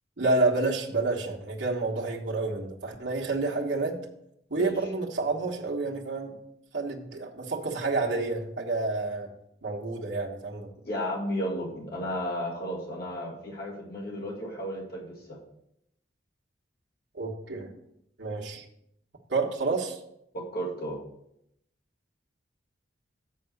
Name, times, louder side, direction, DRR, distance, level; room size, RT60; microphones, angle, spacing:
voice 1, 0.2-4.0 4.5-6.4 6.7-9.3 9.6-10.7 17.1-17.7 18.2-18.7 19.3-20.0, right 3 dB, 75° right, -2 dB, 1.2 m, -29 dB
voice 2, 10.8-15.4 20.3-21.0, equal, 60° left, -3 dB, 1.9 m, -33 dB
7.6 x 4.7 x 6.6 m, 0.77 s
head